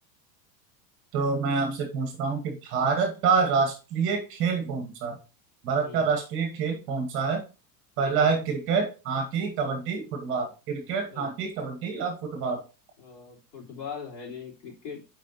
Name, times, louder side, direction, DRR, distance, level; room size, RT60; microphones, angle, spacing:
voice 1, 1.1-5.2 5.6-7.4 8.0-12.6, right 5 dB, 25° right, 4 dB, 1.1 m, -27 dB
voice 2, 8.0-8.3 11.1-11.3 13.0-15.0, left 6 dB, 75° left, -3 dB, 3.6 m, -40 dB
8.3 x 4.8 x 2.7 m, 0.32 s
supercardioid pair, 175°, 50 cm